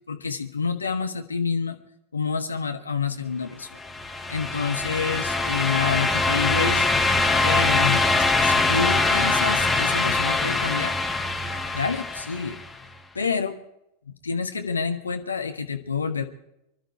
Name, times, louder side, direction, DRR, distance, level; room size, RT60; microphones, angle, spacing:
voice 1, 0.1-1.8 2.1-3.8 4.3-6.9 7.4-8.0 8.4-10.9 11.7-12.6 13.1-13.6 14.2-16.2, left 5 dB, 75° left, 7 dB, 1.3 m, -28 dB
sound 1, 3.8-12.7, left 3 dB, 10° left, 1.5 m, -23 dB
25.0 x 12.0 x 4.4 m, 0.83 s
figure-of-eight pair, 90°, 0 cm